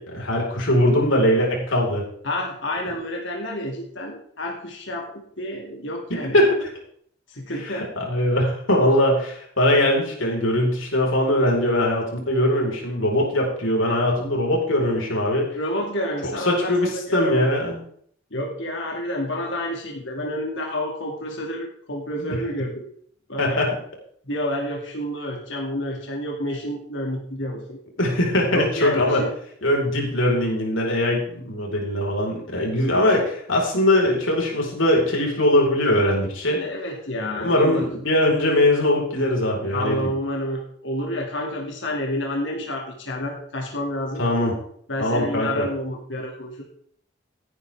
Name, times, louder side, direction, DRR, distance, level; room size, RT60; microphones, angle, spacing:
voice 1, 0.0-2.1 6.3-6.7 7.6-15.6 16.2-17.7 23.4-23.7 28.0-29.2 29.6-36.6 37.3-40.1 44.2-44.5 45.0-45.6, left 1 dB, 85° left, -1 dB, 4.9 m, -21 dB
voice 2, 2.2-6.4 7.3-7.9 15.5-17.5 18.3-22.9 23.3-23.6 24.2-27.8 28.5-29.3 36.4-37.9 39.7-44.2 44.9-46.6, left 1 dB, 70° left, 0 dB, 2.7 m, -29 dB
16.5 x 10.0 x 3.7 m, 0.62 s
head